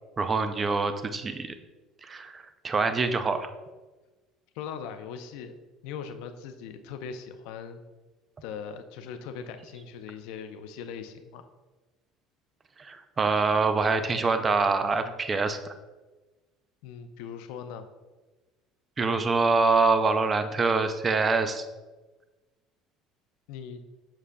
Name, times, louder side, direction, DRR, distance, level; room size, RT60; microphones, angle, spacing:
voice 1, 0.2-1.5 2.1-3.5 12.8-15.6 19.0-21.6, right 4 dB, 20° right, 9 dB, 0.4 m, -25 dB
voice 2, 4.5-5.6 5.8-7.8 8.4-11.4 16.8-17.9 23.5-23.8, left 7 dB, 75° left, 8 dB, 0.5 m, -40 dB
7.3 x 6.5 x 2.2 m, 1.2 s
cardioid pair, 170°, 0 cm